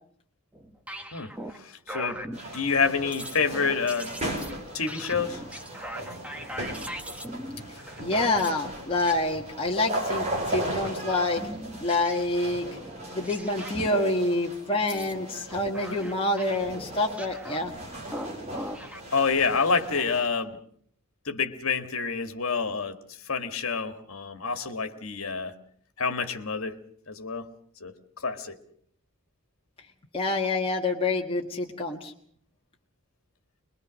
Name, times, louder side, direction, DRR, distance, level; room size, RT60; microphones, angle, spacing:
sound 1, 0.5-1.6 1.9-2.9 3.1-8.6 9.0-9.2 10.2-10.4 10.8-11.0 11.4-14.0 14.8-19.0, equal, 5° right, 1.4 m, -40 dB
voice 1, 1.1-4.1 4.7-5.4 19.1-20.6 21.3-25.5 26.0-26.8 27.1-27.5 27.8-28.6, left 5 dB, 70° left, 8 dB, 1.8 m, -28 dB
sound 2, 2.3-20.3, right 1 dB, 30° right, 4.9 m, -37 dB
voice 2, 8.0-11.4 11.8-12.8 13.1-17.7 30.1-32.1, left 2 dB, 25° left, 0 dB, 1.5 m, -27 dB
22.5 x 22.0 x 6.3 m, 0.62 s
head